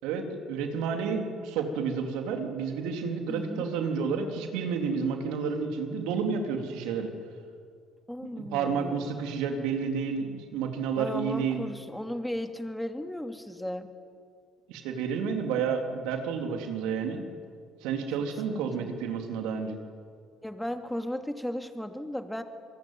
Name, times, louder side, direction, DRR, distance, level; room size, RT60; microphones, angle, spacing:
voice 1, 0.0-7.1 8.5-11.7 14.7-17.3 17.8-19.8, right 6 dB, 75° right, 4 dB, 3.6 m, -30 dB
voice 2, 3.3-3.7 8.1-9.1 11.0-13.9 18.5-18.9 20.4-22.4, left 1 dB, 5° left, 6 dB, 2.8 m, -35 dB
26.5 x 23.0 x 9.4 m, 2.2 s
hypercardioid pair, 60°, 0 cm